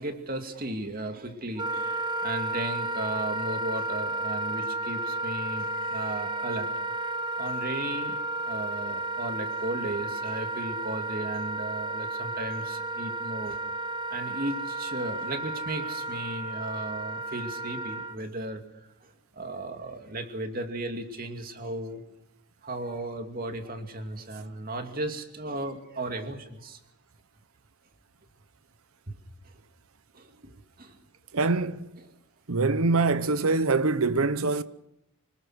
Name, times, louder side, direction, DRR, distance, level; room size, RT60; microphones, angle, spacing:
voice 1, 0.0-13.6 14.1-22.0 22.6-26.8 29.1-29.2 30.1-31.0 31.4-31.5 32.0-32.2, right 1 dB, 40° right, 2.5 m, -36 dB
Wind instrument woodwind instrument, 1.6-18.2, right 2 dB, 20° right, 0.8 m, -32 dB
voice 2, 31.3-31.9 32.5-34.6, right 3 dB, 75° right, 0.9 m, -24 dB
26.5 x 19.5 x 6.4 m
head